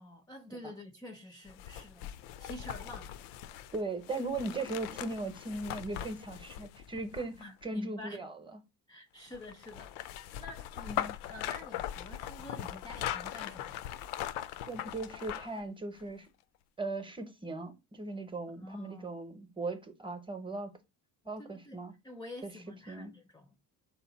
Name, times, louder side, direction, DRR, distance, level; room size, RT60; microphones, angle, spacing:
voice 1, 0.0-3.1 7.4-8.2 8.9-13.9 18.6-19.2 21.4-23.6, left 1 dB, 10° left, 0.4 m, -48 dB
sound 1, 1.5-7.6 9.3-15.6 16.0-16.1, left 11 dB, 80° left, 0.5 m, -40 dB
voice 2, 3.7-8.3 10.9-11.1 14.7-16.3 16.8-20.7 21.2-21.9 22.4-22.5 22.9-23.1, right 2 dB, 15° right, 0.8 m, -38 dB
4.3 x 2.9 x 4.0 m
cardioid pair, 115°, 39 cm